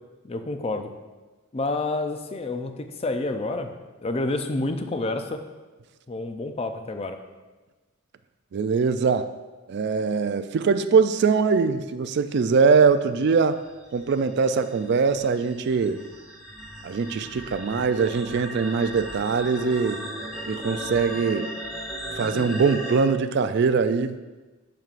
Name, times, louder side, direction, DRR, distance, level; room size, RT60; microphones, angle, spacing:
voice 1, 0.2-0.9 1.5-3.7 4.0-5.4 6.1-7.2, left 2 dB, 30° left, 7 dB, 0.4 m, -29 dB
voice 2, 8.5-9.3 9.7-13.6 13.9-16.0 16.8-20.0 20.5-21.5 22.2-24.1, right 5 dB, 55° right, 11 dB, 0.3 m, -22 dB
sound 1, 13.6-22.9, equal, ahead, 2.3 m, -36 dB
7.6 x 6.9 x 2.5 m, 1.2 s
head